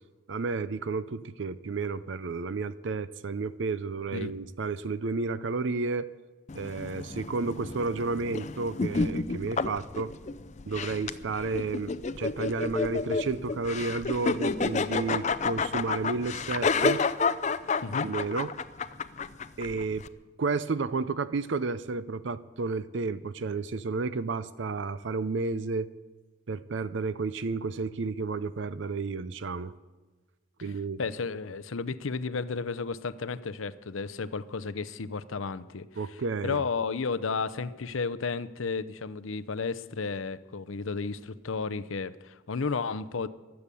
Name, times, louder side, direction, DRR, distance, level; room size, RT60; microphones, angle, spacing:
voice 1, 0.3-6.1 6.5-10.1 10.7-17.0 18.0-18.5 19.6-20.0 20.4-25.9 26.5-29.7 30.6-31.0 36.0-36.6, right 4 dB, 60° right, 15 dB, 0.5 m, -31 dB
sound 1, 6.5-20.1, left 4 dB, 35° left, 0.5 m, -30 dB
voice 2, 31.0-35.8 36.1-43.3, left 4 dB, 75° left, 14 dB, 0.6 m, -33 dB
15.5 x 11.5 x 6.9 m, 1.2 s
head